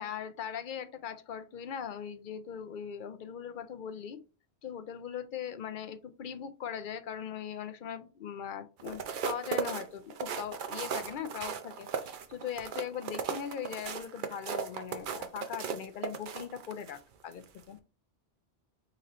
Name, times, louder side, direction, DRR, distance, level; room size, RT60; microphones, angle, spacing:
voice 1, 0.0-4.2 4.6-17.8, left 8 dB, 60° left, 9 dB, 0.6 m, -40 dB
sound 1, 8.8-17.0 17.4-17.6, right 7 dB, 60° right, 0.7 m, -36 dB
5.1 x 3.0 x 3.0 m, 0.34 s
omnidirectional pair, 1.0 m